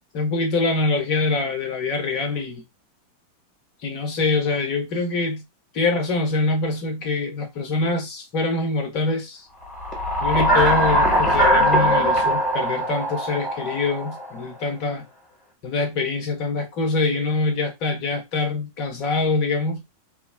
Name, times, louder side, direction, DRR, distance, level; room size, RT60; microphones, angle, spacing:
voice 1, 0.1-2.6 3.8-5.4 5.7-9.5 10.2-15.0 15.6-19.8, left 3 dB, 45° left, 1.0 m, -24 dB
sound 1, 9.7-14.4, equal, 25° left, 1.3 m, -20 dB
2.8 x 2.0 x 2.5 m
figure-of-eight pair, 90°, 0 cm